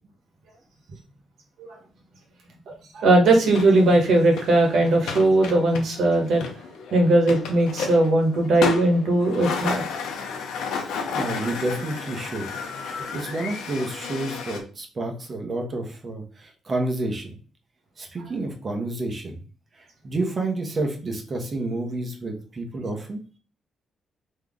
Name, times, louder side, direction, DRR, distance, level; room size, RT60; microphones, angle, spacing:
voice 1, 2.7-6.4 6.9-9.8, right 2 dB, 70° right, 2 dB, 1.4 m, -19 dB
sound 1, 3.4-14.6, left 4 dB, 90° left, 0.7 m, -32 dB
voice 2, 10.8-12.4 12.8-17.3 18.0-19.4 19.8-23.2, right 2 dB, 35° right, 3 dB, 1.1 m, -30 dB
3.7 x 3.1 x 3.6 m, 0.38 s
cardioid pair, 100°, 0 cm